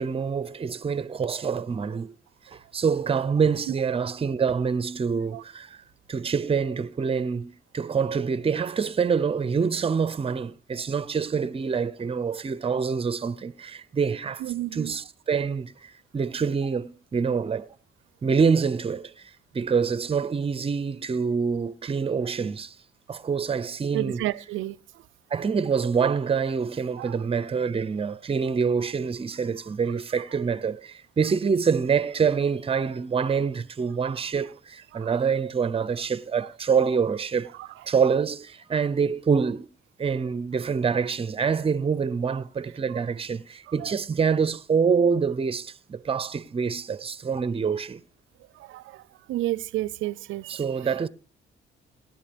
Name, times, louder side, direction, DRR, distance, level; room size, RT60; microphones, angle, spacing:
voice 1, 0.0-2.1 2.5-5.8 6.1-14.4 14.7-17.7 18.2-22.7 23.1-24.2 25.3-37.5 37.9-39.7 40.0-48.0 50.5-51.1, right 6 dB, 30° right, 0.7 m, -26 dB
voice 2, 14.4-14.9 23.9-24.8 27.0-27.2 34.9-35.1 37.6-37.7 48.6-49.0 49.3-50.6, right 15 dB, 80° right, 0.5 m, -31 dB
18.0 x 10.5 x 3.4 m
cardioid pair, 90°, 20 cm